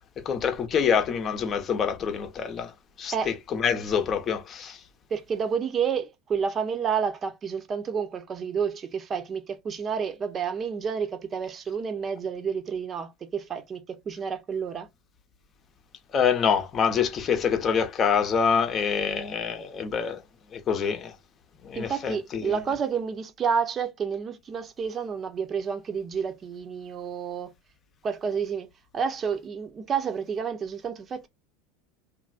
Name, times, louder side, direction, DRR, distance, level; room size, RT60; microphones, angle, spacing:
voice 1, 0.2-2.7 3.0-4.8 16.1-20.2 20.5-21.1 21.6-22.6, left 6 dB, 35° left, 0.8 m, -26 dB
voice 2, 5.1-14.9 21.7-27.5 28.0-28.7 28.9-31.3, right 6 dB, 30° right, 0.7 m, -30 dB
3.1 x 2.5 x 2.4 m
hypercardioid pair, 80°, 0 cm